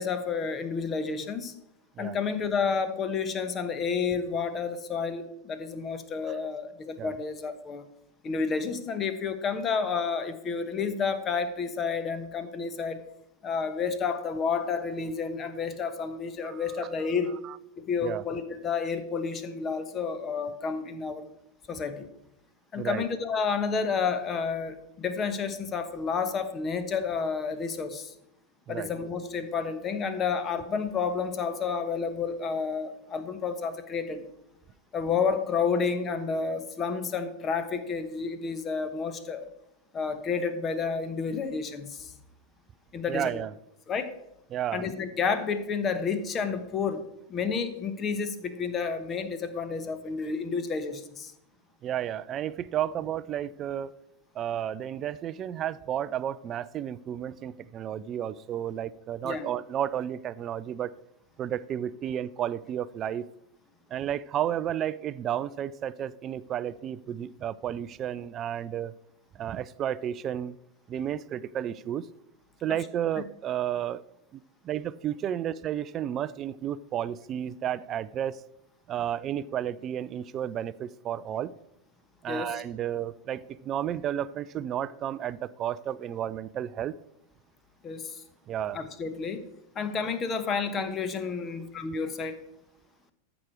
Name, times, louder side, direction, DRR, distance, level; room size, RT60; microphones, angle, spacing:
voice 1, 0.0-1.5 2.0-7.9 8.2-13.0 13.4-17.3 17.8-21.3 21.7-22.1 22.7-28.1 28.7-34.2 34.9-39.4 39.9-42.1 42.9-43.3 43.9-44.1 44.7-47.0 47.3-51.3 59.2-59.5 82.3-82.6 87.8-88.2 88.7-89.4 89.7-92.3, left 5 dB, 25° left, 1.1 m, -30 dB
voice 2, 43.1-43.5 44.5-44.9 51.8-54.0 54.3-60.9 61.4-63.3 63.9-68.9 69.3-70.6 70.9-72.1 72.6-74.0 74.3-78.4 78.9-81.5 82.2-86.9 88.5-88.8, right 10 dB, 30° right, 0.4 m, -32 dB
14.0 x 6.2 x 4.7 m
figure-of-eight pair, 90°, 0 cm